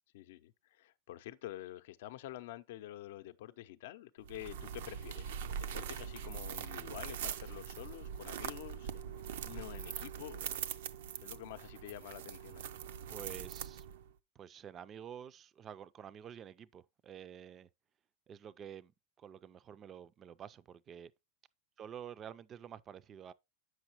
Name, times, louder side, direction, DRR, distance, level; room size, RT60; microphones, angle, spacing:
voice 1, 0.1-8.9 9.5-10.4 11.2-12.6, left 14 dB, 70° left, 0.5 m, -48 dB
sound 1, 4.2-14.1, right 8 dB, 80° right, 0.5 m, -42 dB
voice 2, 13.1-13.9 14.4-17.7 18.3-18.9 19.2-21.1 21.8-23.3, right 9 dB, 25° right, 0.4 m, -49 dB
8.0 x 6.2 x 2.9 m
supercardioid pair, 145°, 0 cm